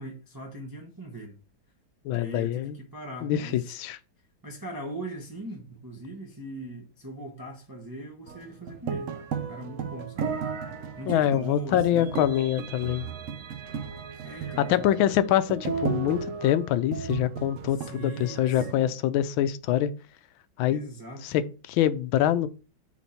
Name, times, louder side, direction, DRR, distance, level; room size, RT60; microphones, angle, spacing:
voice 1, 0.0-1.4 2.1-3.7 4.4-10.3 11.0-12.2 14.2-14.9 17.8-19.0 20.7-21.3, right 1 dB, 25° right, 0.4 m, -40 dB
voice 2, 2.0-2.8 3.2-4.0 11.1-13.1 14.6-19.9 20.6-20.8 21.2-22.5, left 11 dB, 90° left, 1.4 m, -25 dB
sound 1, 8.3-18.7, right 6 dB, 65° right, 0.7 m, -35 dB
6.1 x 3.6 x 4.3 m
omnidirectional pair, 2.1 m